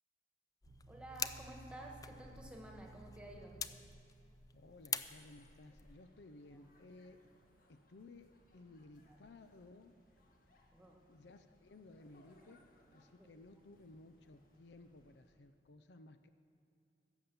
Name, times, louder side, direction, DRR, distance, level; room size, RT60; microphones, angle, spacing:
sound 1, 0.6-6.0, left 7 dB, 20° left, 0.3 m, -46 dB
sound 2, 0.7-5.3, right 2 dB, 70° right, 0.6 m, -58 dB
voice 1, 0.9-3.7 6.5-6.6 9.1-9.2 10.7-11.0 13.2-13.3, right 1 dB, 5° right, 0 dB, 1.5 m, -52 dB
sound 3, 4.4-15.6, left 1 dB, 55° left, 1.6 m, -70 dB
voice 2, 4.5-7.2 7.7-10.0 11.1-12.6 12.9-16.3, left 2 dB, 75° left, 10 dB, 0.6 m, -58 dB
16.0 x 7.2 x 7.0 m, 2.6 s
head